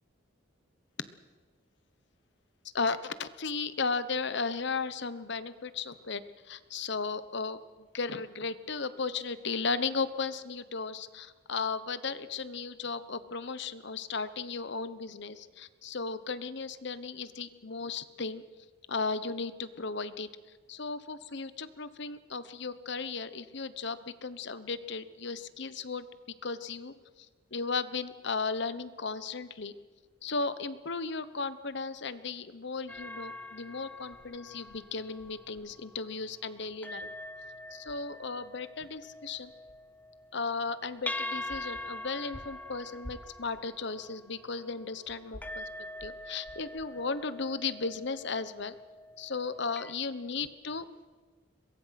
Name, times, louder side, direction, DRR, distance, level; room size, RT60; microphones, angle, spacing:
voice 1, 2.7-6.2 6.5-7.6 7.9-18.4 18.9-20.3 20.7-26.1 26.4-26.9 27.5-29.7 30.2-37.1 37.7-39.5 40.3-45.6 46.0-48.7 49.2-50.8, left 4 dB, 60° left, 13 dB, 1.1 m, -35 dB
sound 1, 32.9-36.1 36.6-49.9, left 2 dB, 10° left, 0.8 m, -44 dB
22.5 x 22.5 x 5.9 m, 1.4 s
head